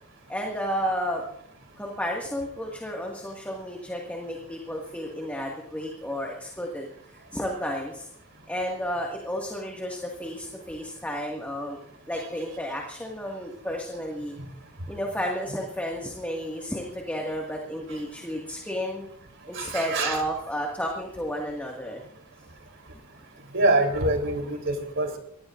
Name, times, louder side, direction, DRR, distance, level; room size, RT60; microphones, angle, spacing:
voice 1, 0.3-1.2 1.8-8.1 8.5-11.8 12.1-14.4 14.9-19.1 19.5-22.0, equal, 5° left, 0 dB, 1.9 m, -32 dB
voice 2, 19.5-20.2 23.5-25.2, right 2 dB, 60° right, 4 dB, 3.7 m, -25 dB
24.5 x 18.5 x 2.6 m, 0.71 s
head